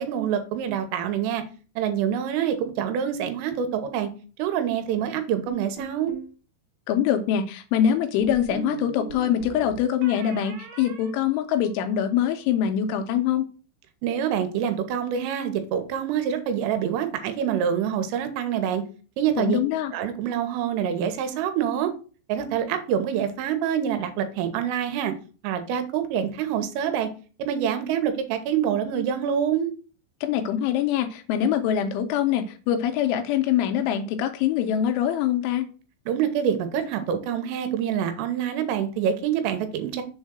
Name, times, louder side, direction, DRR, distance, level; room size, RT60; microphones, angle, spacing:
voice 1, 0.0-1.4 1.8-4.1 4.4-6.1 14.0-18.8 19.2-19.6 19.9-21.9 22.3-25.1 25.4-27.1 27.4-29.7 36.1-40.0, right 9 dB, 85° right, 8 dB, 3.4 m, -26 dB
sound 1, 5.5-6.3 8.2-12.0, right 5 dB, 60° right, 2.6 m, -39 dB
voice 2, 6.9-13.5 19.4-19.9 30.2-35.7, left 9 dB, 80° left, 7 dB, 2.9 m, -24 dB
7.2 x 3.7 x 6.1 m, 0.37 s
omnidirectional pair, 5.9 m